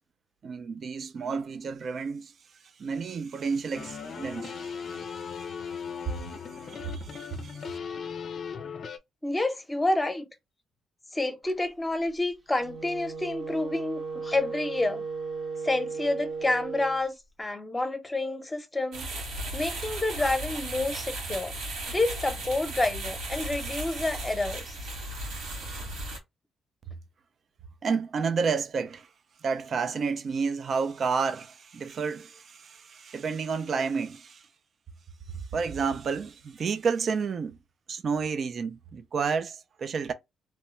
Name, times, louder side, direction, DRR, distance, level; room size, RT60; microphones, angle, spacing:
voice 1, 0.4-7.8 27.8-29.1 29.4-34.5 35.3-37.6 37.9-40.1, right 5 dB, 50° right, 0.5 m, -31 dB
sound 1, 3.7-9.0, left 6 dB, 50° left, 0.4 m, -38 dB
voice 2, 9.2-10.3 11.1-15.0 15.6-19.1 19.5-21.5 21.9-24.8, left 2 dB, 15° left, 0.8 m, -29 dB
Wind instrument woodwind instrument, 12.5-17.0, right 4 dB, 25° right, 0.8 m, -36 dB
sound 2, 18.9-26.2, right 1 dB, 80° right, 1.8 m, -36 dB
3.0 x 2.3 x 3.1 m
cardioid pair, 90°, 0 cm